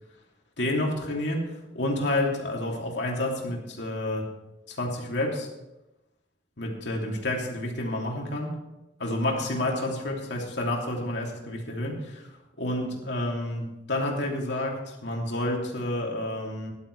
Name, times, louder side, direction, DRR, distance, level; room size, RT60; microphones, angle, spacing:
voice 1, 0.6-4.3 4.7-5.5 6.6-8.5 9.0-12.3 12.6-16.7, left 1 dB, 65° left, -1 dB, 2.8 m, -29 dB
17.0 x 11.5 x 3.3 m, 0.97 s
head